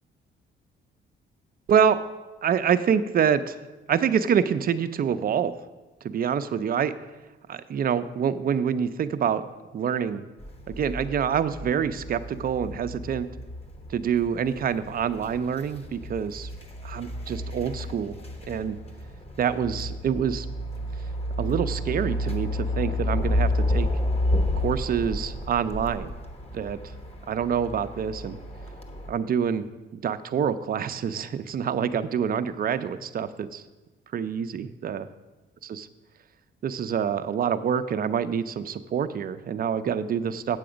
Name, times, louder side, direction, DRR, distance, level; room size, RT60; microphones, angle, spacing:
voice 1, 1.7-2.0 2.4-3.6 3.9-5.5 6.0-6.9 7.5-9.4 9.7-10.3 10.7-13.3 13.9-16.5 16.8-18.2 18.5-18.8 19.4-20.5 21.4-23.9 24.6-26.1 26.5-26.8 27.3-28.4 29.1-33.6 34.1-35.1 35.6-35.9 36.6-40.6, right 8 dB, 50° right, 11 dB, 0.5 m, -26 dB
sound 1, 10.4-29.1, left 1 dB, 30° left, 1.2 m, -31 dB
7.9 x 7.5 x 5.0 m, 1.2 s
cardioid pair, 90°, 20 cm